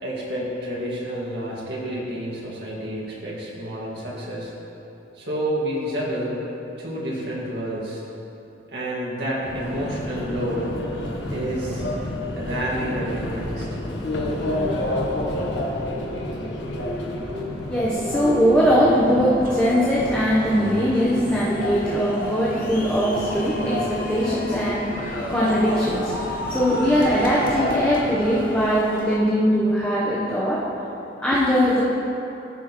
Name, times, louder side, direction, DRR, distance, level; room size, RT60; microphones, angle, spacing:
voice 1, 0.0-4.5 5.2-6.4 6.8-8.0 8.7-10.7 11.3-11.8 12.4-13.7 24.2-24.6 27.0-27.1, equal, 65° right, -5 dB, 1.9 m, -29 dB
Subway metro underground, 9.4-28.7, left 1 dB, 80° left, 1.1 m, -30 dB
voice 2, 17.7-30.7 31.2-31.8, equal, 10° left, -8 dB, 0.9 m, -21 dB
sound 1, 19.4-26.9, right 2 dB, 45° right, 0.9 m, -36 dB
sound 2, 20.0-29.2, left 1 dB, 45° left, 1.0 m, -35 dB
15.0 x 6.2 x 3.0 m, 3.0 s
head